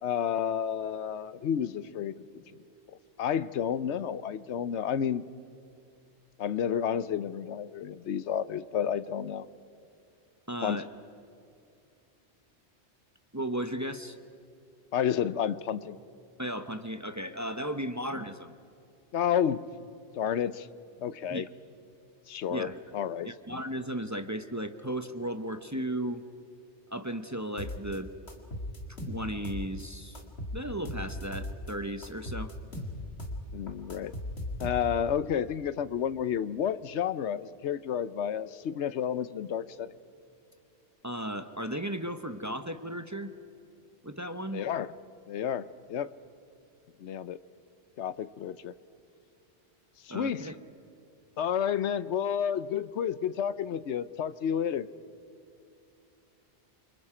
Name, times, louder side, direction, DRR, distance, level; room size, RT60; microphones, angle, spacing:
voice 1, 0.0-2.1 3.2-5.2 6.4-9.5 10.6-10.9 14.9-16.0 19.1-19.7 20.2-20.7 21.0-21.5 22.3-22.7 22.9-23.3 33.5-34.1 34.6-39.9 44.5-44.9 45.3-46.1 47.0-47.4 48.0-48.7 50.0-50.5 51.4-54.9, left 8 dB, 80° left, 15 dB, 1.0 m, -30 dB
voice 2, 10.5-10.9 13.3-14.2 16.4-18.5 21.3-21.5 22.5-22.8 23.2-26.2 26.9-28.1 29.1-30.2 30.5-32.5 41.0-43.3 44.0-44.6 50.1-50.5, right 1 dB, 15° right, 9 dB, 0.8 m, -35 dB
sound 1, 27.6-28.0 28.3-29.8 30.1-31.7 32.0-35.1, left 1 dB, 65° left, 2.5 m, -38 dB
28.5 x 25.0 x 5.0 m, 2.6 s
omnidirectional pair, 1.2 m